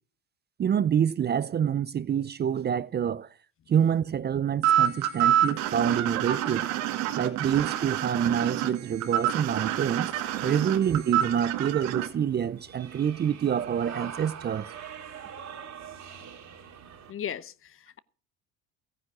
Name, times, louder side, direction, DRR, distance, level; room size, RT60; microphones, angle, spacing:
voice 1, 0.6-3.3 3.7-6.7 7.2-10.1 10.4-14.7, right 8 dB, 30° right, 0.5 m, -27 dB
sound 1, 4.6-12.1, right 11 dB, 85° right, 2.2 m, -27 dB
sound 2, 9.8-17.1, right 8 dB, 50° right, 2.6 m, -44 dB
voice 2, 17.1-18.0, left 9 dB, 35° left, 0.8 m, -37 dB
14.5 x 9.7 x 6.0 m
supercardioid pair, 95°, 37 cm